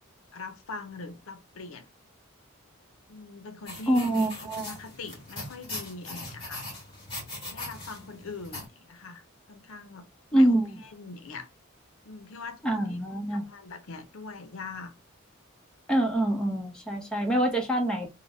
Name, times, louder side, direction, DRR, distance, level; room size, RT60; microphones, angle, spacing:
voice 1, 0.3-1.9 3.1-6.7 7.5-11.5 12.0-13.0 13.3-14.9, left 3 dB, 75° left, 0.6 m, -42 dB
sound 1, 3.7-8.7, left 2 dB, 25° left, 2.0 m, -40 dB
voice 2, 3.9-4.7 10.3-10.8 12.6-13.4 15.9-18.1, right 1 dB, 5° left, 0.7 m, -25 dB
3.9 x 2.1 x 3.3 m
head